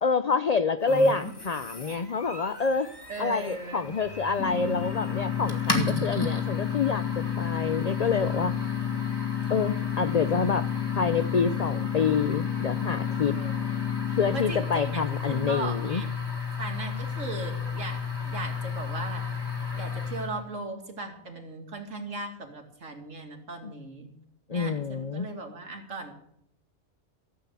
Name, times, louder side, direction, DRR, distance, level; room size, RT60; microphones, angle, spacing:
voice 1, 0.0-2.9 3.2-8.7 9.5-10.7 10.9-13.3 14.2-16.0 23.6-23.7 24.5-25.3, left 5 dB, 50° left, 12 dB, 0.4 m, -27 dB
sound 1, 0.9-20.4, left 5 dB, 15° left, 2.3 m, -33 dB
voice 2, 3.1-3.9 13.3-16.2 16.6-19.3 19.7-24.1 24.5-26.2, right 3 dB, 70° right, 3 dB, 2.6 m, -38 dB
sound 2, 4.4-14.4, left 11 dB, 85° left, 1.2 m, -33 dB
14.0 x 8.3 x 8.1 m, 0.71 s
omnidirectional pair, 1.4 m